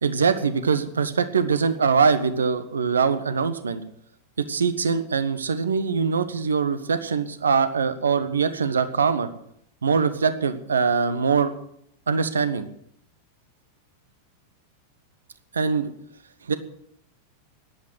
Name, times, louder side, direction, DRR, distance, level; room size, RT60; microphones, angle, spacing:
voice 1, 0.0-3.8 4.4-9.3 9.8-11.5 12.1-12.7 15.5-15.9 16.5-16.6, right 5 dB, 70° right, 12 dB, 1.3 m, -23 dB
14.0 x 11.0 x 7.7 m, 0.69 s
figure-of-eight pair, 90°, 0 cm